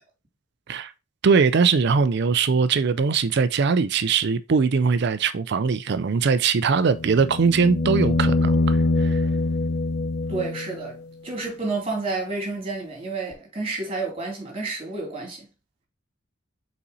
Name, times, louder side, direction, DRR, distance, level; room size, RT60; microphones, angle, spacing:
voice 1, 1.2-9.2, right 5 dB, 55° right, 0.4 m, -21 dB
sound 1, 6.8-10.9 13.3-13.4, left 2 dB, 55° left, 0.9 m, -24 dB
voice 2, 10.3-11.0 11.2-15.5, right 3 dB, 30° right, 2.7 m, -30 dB
5.6 x 4.1 x 4.0 m
head